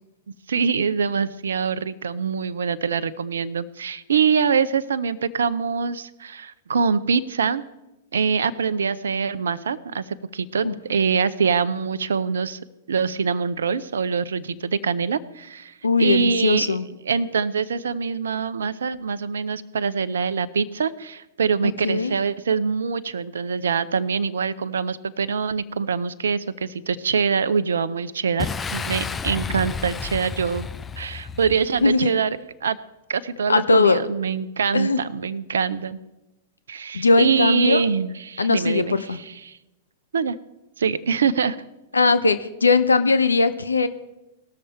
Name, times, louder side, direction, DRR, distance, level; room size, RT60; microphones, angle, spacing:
voice 1, 0.5-7.6 8.1-12.6 12.9-16.7 17.0-30.7 31.0-32.8 33.1-36.0 36.7-39.6 40.1-40.3 40.8-41.6, right 6 dB, 75° right, 15 dB, 0.5 m, -24 dB
voice 2, 15.8-16.8 21.6-22.2 31.8-32.1 33.5-34.0 34.7-35.0 36.9-37.8 38.4-39.2 41.9-43.9, left 3 dB, 85° left, 12 dB, 0.6 m, -19 dB
Boom, 28.4-32.0, left 5 dB, 15° left, 0.4 m, -31 dB
19.0 x 6.7 x 4.3 m, 0.95 s
hypercardioid pair, 105°, 0 cm